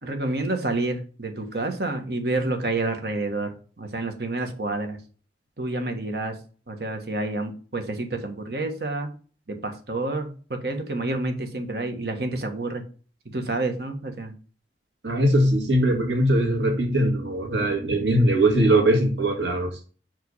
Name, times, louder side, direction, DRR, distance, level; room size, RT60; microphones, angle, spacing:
voice 1, 0.0-5.0 5.6-6.4 6.7-9.1 9.5-12.8 13.2-14.3, right 2 dB, 60° right, 5 dB, 1.5 m, -29 dB
voice 2, 15.0-19.7, right 1 dB, 85° right, 2 dB, 2.2 m, -21 dB
5.6 x 5.0 x 5.5 m, 0.38 s
head